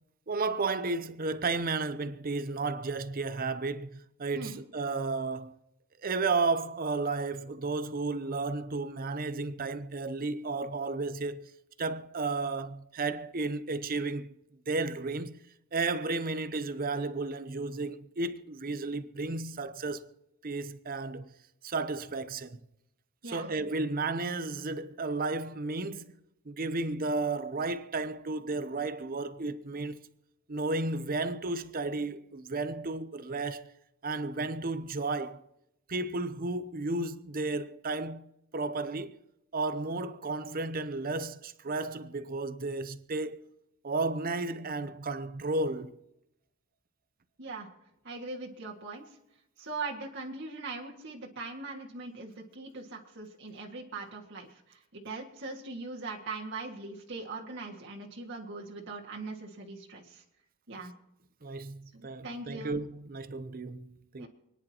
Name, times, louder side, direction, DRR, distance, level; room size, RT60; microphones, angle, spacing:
voice 1, 0.3-5.5 6.0-11.5 11.8-14.3 14.7-15.4 15.7-20.1 20.4-21.3 21.6-22.6 23.2-26.1 26.5-30.0 30.5-33.7 34.0-35.4 35.9-39.1 39.5-43.4 43.8-46.0 61.4-64.3, right 3 dB, 45° right, 0.7 m, -33 dB
voice 2, 48.0-49.1 49.6-60.2 60.7-60.9 61.9-62.8 64.2-64.3, right 3 dB, 60° right, 1.9 m, -41 dB
28.5 x 10.5 x 2.9 m
head